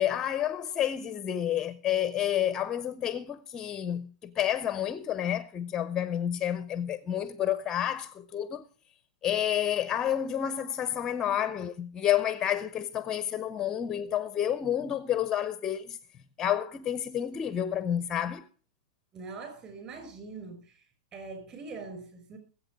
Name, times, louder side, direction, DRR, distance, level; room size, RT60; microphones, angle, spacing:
voice 1, 0.0-8.6 9.2-16.0 16.4-18.5, left 10 dB, 15° left, 0.5 m, -30 dB
voice 2, 19.1-20.8 21.1-22.4, right 4 dB, 25° right, 5.1 m, -43 dB
20.0 x 8.2 x 4.9 m
hypercardioid pair, 160°, 4 cm